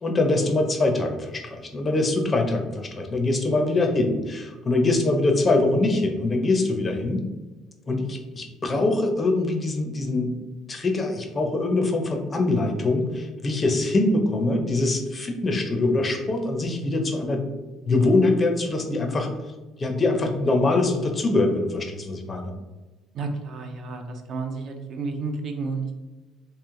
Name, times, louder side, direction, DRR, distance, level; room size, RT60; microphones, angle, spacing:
voice 1, 0.0-7.2 7.9-10.4 10.7-17.4 17.9-19.3 19.8-22.5, left 2 dB, 25° left, 4 dB, 0.5 m, -23 dB
voice 2, 23.1-25.9, right 4 dB, 45° right, 4 dB, 0.5 m, -31 dB
3.0 x 2.8 x 3.6 m, 1.2 s
cardioid pair, 145°, 0 cm